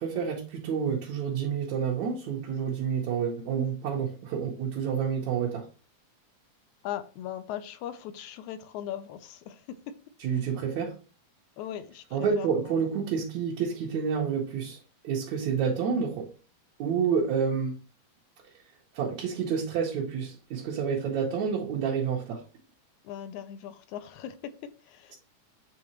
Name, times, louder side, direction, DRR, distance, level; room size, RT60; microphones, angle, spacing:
voice 1, 0.0-5.6 10.2-10.9 12.1-14.8 15.0-16.3 16.8-17.7 18.9-22.4, right 6 dB, 70° right, 2.4 m, -29 dB
voice 2, 6.8-9.8 11.6-12.8 23.0-24.6 24.8-25.2, left 10 dB, 80° left, 2.0 m, -39 dB
8.6 x 3.8 x 3.0 m
omnidirectional pair, 3.5 m